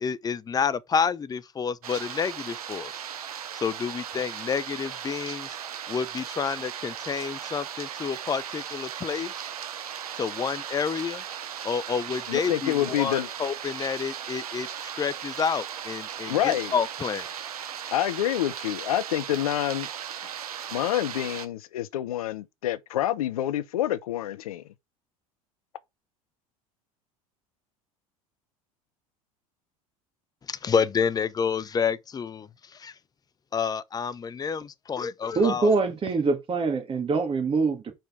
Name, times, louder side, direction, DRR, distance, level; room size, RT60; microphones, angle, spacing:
voice 1, 0.0-2.9 3.6-5.5 5.9-9.3 10.2-11.2 11.6-14.7 15.0-17.2 30.5-32.5 32.8-32.9 33.5-35.7, left 6 dB, 20° left, 0.5 m, -29 dB
sound 1, 1.8-21.5, right 9 dB, 80° right, 0.8 m, -37 dB
voice 2, 12.3-13.3 16.3-16.7 17.9-19.9 20.7-24.6, left 12 dB, 75° left, 0.6 m, -27 dB
voice 3, 35.3-37.9, right 4 dB, 30° right, 2.2 m, -24 dB
5.1 x 4.4 x 4.7 m
hypercardioid pair, 75°, 19 cm